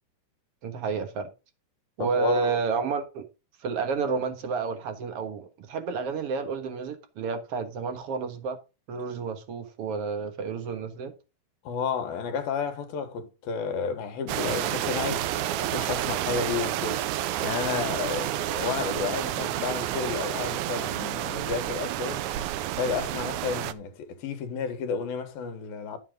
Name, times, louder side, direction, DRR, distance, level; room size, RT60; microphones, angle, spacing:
voice 1, 0.6-1.3 2.0-3.3 3.6-8.6 8.9-11.1, right 5 dB, 55° right, 1.8 m, -30 dB
voice 2, 2.0-2.6 11.6-22.2 22.7-26.0, left 6 dB, 85° left, 3.3 m, -32 dB
sound 1, 14.3-23.7, right 13 dB, 80° right, 1.8 m, -30 dB
12.0 x 7.4 x 3.8 m
omnidirectional pair, 4.1 m